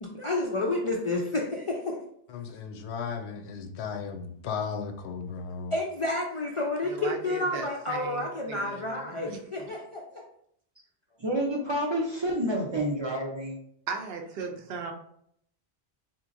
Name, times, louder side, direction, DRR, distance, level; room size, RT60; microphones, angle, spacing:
voice 1, 0.0-2.0 5.7-10.2, left 2 dB, 50° left, 0.4 m, -30 dB
voice 2, 2.3-5.7, left 6 dB, 90° left, 0.8 m, -35 dB
voice 3, 6.9-9.7 13.9-14.9, right 5 dB, 70° right, 0.8 m, -38 dB
voice 4, 11.2-13.6, right 1 dB, 35° right, 0.4 m, -29 dB
3.8 x 2.9 x 2.5 m
omnidirectional pair, 1.1 m